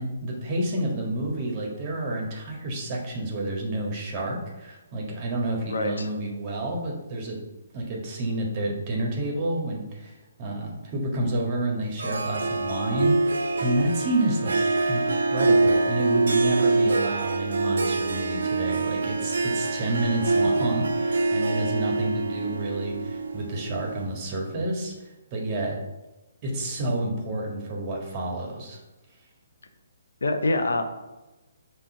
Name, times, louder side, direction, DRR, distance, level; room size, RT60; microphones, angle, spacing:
voice 1, 0.0-7.4 7.7-14.6 14.9-25.8 26.4-28.8, right 1 dB, 30° right, -1 dB, 1.8 m, -29 dB
voice 2, 5.7-6.1 30.2-30.8, left 2 dB, 70° left, 7 dB, 0.8 m, -25 dB
Harp, 12.0-24.2, right 3 dB, 65° right, 0.7 m, -25 dB
6.1 x 3.4 x 5.6 m, 1.1 s
figure-of-eight pair, 135°, 0 cm